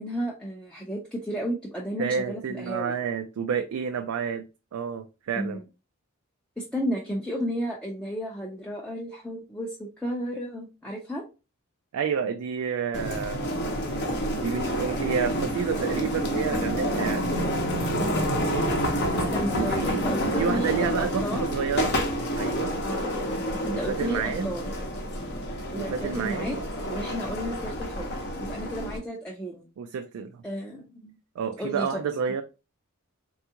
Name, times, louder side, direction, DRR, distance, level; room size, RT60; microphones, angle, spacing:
voice 1, 0.0-2.9 5.4-5.6 6.6-11.2 18.0-18.3 19.1-21.5 22.8-23.1 23.6-24.7 25.7-26.6 26.9-28.1 28.4-29.6 30.4-31.2 31.6-32.0, equal, 5° left, -2 dB, 0.4 m, -33 dB
voice 2, 2.0-5.6 11.9-13.5 14.3-17.3 19.5-20.0 20.4-22.0 22.4-22.8 23.7-24.5 25.7-26.5 29.8-30.4 31.4-32.4, right 6 dB, 90° right, 6 dB, 0.3 m, -29 dB
sound 1, 12.9-29.0, equal, 50° left, 0.7 m, -28 dB
3.5 x 2.4 x 2.7 m, 0.30 s
head